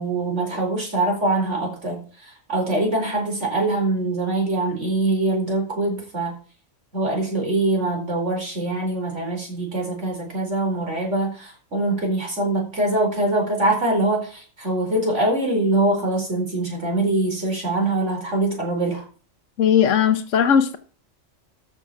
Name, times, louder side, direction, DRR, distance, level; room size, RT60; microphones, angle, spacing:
voice 1, 0.0-2.0 2.5-6.3 6.9-19.0, right 2 dB, 70° right, 1 dB, 4.9 m, -23 dB
voice 2, 19.6-20.8, left 8 dB, 80° left, 10 dB, 1.3 m, -18 dB
13.5 x 6.1 x 5.9 m, 0.38 s
omnidirectional pair, 1.3 m